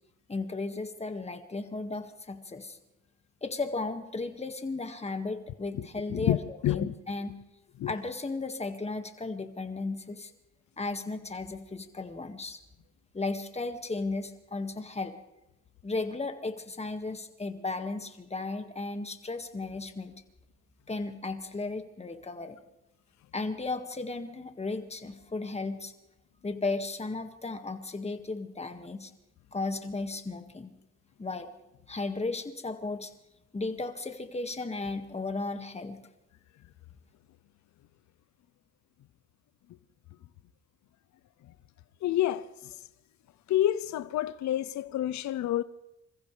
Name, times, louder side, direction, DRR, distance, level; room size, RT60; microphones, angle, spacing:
voice 1, 0.3-2.8 3.4-7.4 7.8-10.3 10.8-12.6 13.1-15.1 15.8-20.2 20.9-22.6 23.3-25.9 26.4-29.1 29.5-30.7 31.2-31.5 31.9-33.1 33.5-36.0, left 3 dB, 20° left, 1.8 m, -35 dB
voice 2, 6.6-6.9 7.8-7.9 42.0-42.5 43.5-45.6, left 12 dB, 70° left, 0.6 m, -28 dB
27.5 x 15.0 x 3.3 m
cardioid pair, 90°, 30 cm